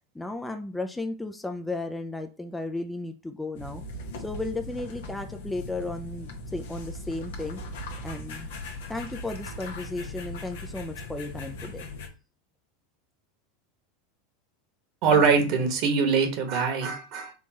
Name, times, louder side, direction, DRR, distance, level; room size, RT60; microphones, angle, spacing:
voice 1, 0.1-3.8 4.2-7.6 8.0-8.5 8.9-11.9, left 2 dB, 10° left, 6 dB, 0.5 m, -34 dB
sound 1, 3.5-12.1, left 1 dB, 70° left, 1.1 m, -39 dB
voice 2, 15.0-17.3, right 5 dB, 55° right, 5 dB, 1.4 m, -23 dB
4.4 x 3.5 x 3.0 m, 0.33 s
hypercardioid pair, 90°, 0 cm